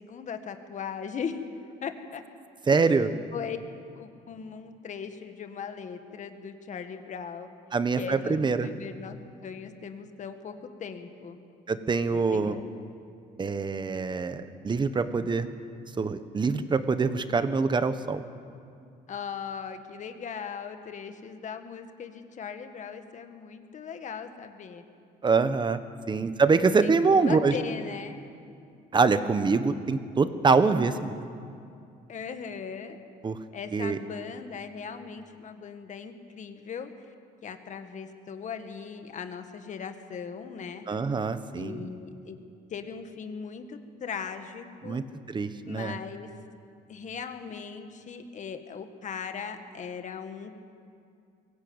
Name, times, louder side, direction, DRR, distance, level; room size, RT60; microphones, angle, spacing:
voice 1, 0.0-1.4 1.8-2.2 2.7-3.0 3.3-3.6 4.0-7.5 8.0-9.2 9.4-11.4 12.1-12.6 19.1-24.8 26.1-26.3 26.8-28.2 32.1-33.0 33.5-36.9 37.4-40.9 41.5-42.4 42.7-45.0 45.7-46.3 46.9-50.6, left 6 dB, 45° left, 7 dB, 1.8 m, -39 dB
voice 2, 2.7-3.1 7.7-8.7 11.7-12.5 13.4-15.5 16.0-18.2 25.2-25.8 26.1-27.5 28.9-31.1 33.2-33.4 33.7-34.0 40.9-41.9 44.8-45.0 45.3-45.9, right 4 dB, 25° right, 11 dB, 1.3 m, -24 dB
23.0 x 16.5 x 8.9 m, 2.4 s
cardioid pair, 110°, 17 cm